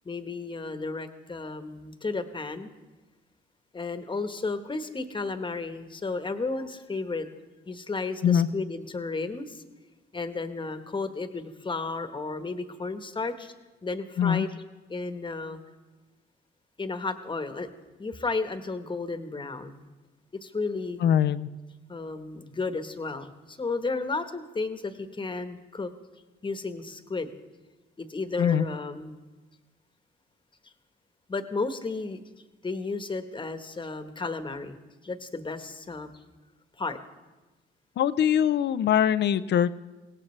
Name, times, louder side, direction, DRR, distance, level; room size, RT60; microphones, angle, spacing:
voice 1, 0.0-2.7 3.7-7.3 7.7-9.6 10.1-13.5 13.8-14.6 14.9-15.6 16.8-17.7 18.0-19.9 20.3-21.0 21.9-25.9 26.4-27.3 28.0-29.2 31.3-32.2 32.6-34.8 35.0-36.1 36.8-37.0, left 3 dB, 25° left, 8 dB, 1.2 m, -33 dB
voice 2, 21.0-21.5 28.4-28.6 38.0-39.7, left 9 dB, 60° left, 14 dB, 0.6 m, -22 dB
23.0 x 17.5 x 3.3 m, 1.2 s
cardioid pair, 90°, 20 cm